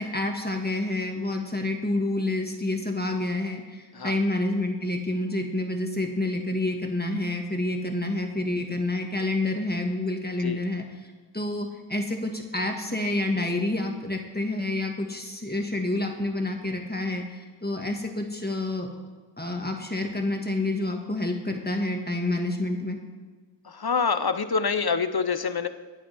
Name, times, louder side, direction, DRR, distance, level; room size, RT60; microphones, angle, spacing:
voice 1, 0.0-10.8 11.3-18.9 19.4-23.0, left 2 dB, 20° left, 2 dB, 1.7 m, -28 dB
voice 2, 23.7-25.7, left 5 dB, 55° left, 10 dB, 0.8 m, -26 dB
22.5 x 8.5 x 3.5 m, 1.4 s
wide cardioid pair, 40°, 44 cm